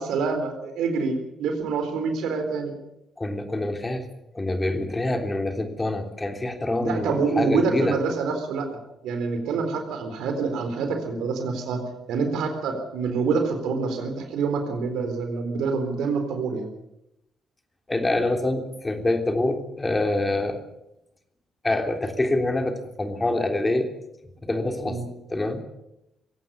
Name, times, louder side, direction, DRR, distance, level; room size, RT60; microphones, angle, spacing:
voice 1, 0.0-2.7 6.8-8.7 9.0-16.7 24.8-25.0, right 4 dB, 65° right, 6 dB, 4.0 m, -26 dB
voice 2, 3.2-4.0 4.4-8.0 17.9-20.6 21.6-23.9 24.4-25.0 25.3-25.6, left 2 dB, 20° left, 5 dB, 3.4 m, -25 dB
22.5 x 17.0 x 7.2 m, 0.85 s
figure-of-eight pair, 40°, 0 cm